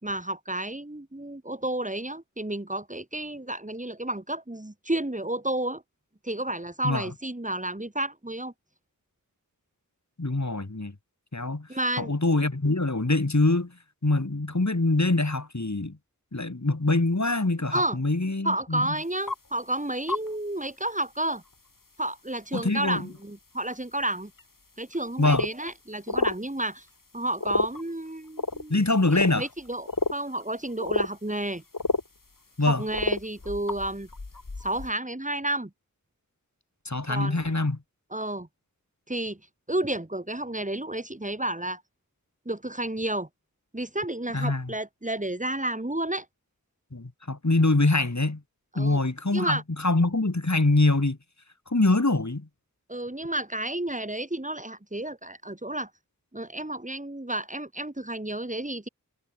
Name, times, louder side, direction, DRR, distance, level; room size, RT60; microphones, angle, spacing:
voice 1, 0.0-5.8 6.2-8.5 11.7-12.1 17.7-18.0 18.4-21.4 22.0-24.3 24.8-26.9 27.1-28.7 29.1-31.6 32.7-34.1 34.6-35.7 37.1-37.4 38.1-38.5 39.1-39.4 39.7-41.8 42.4-43.3 43.7-46.3 48.7-49.0 49.3-49.6 52.9-55.9 56.3-58.9, right 1 dB, 20° right, 2.9 m, -31 dB
voice 2, 10.2-10.9 11.3-11.7 12.0-13.7 14.0-16.0 16.3-18.9 22.5-23.0 25.2-25.5 28.7-29.5 32.6-32.8 36.8-37.8 44.3-44.7 46.9-48.4 48.7-51.2 51.7-52.5, left 2 dB, 55° left, 4.9 m, -24 dB
sound 1, 19.3-19.4 20.1-20.3 20.6-20.7 21.0-21.1 23.2-23.3 24.4-24.5 24.9-25.0 25.2-25.7 26.1-26.4 27.4-27.8 28.4-28.6 29.1-30.1 30.4-30.5 30.8-31.1 31.4-31.5 31.7-32.1 32.9-34.9, left 3 dB, 75° left, 3.5 m, -29 dB
wide cardioid pair, 45°, 34 cm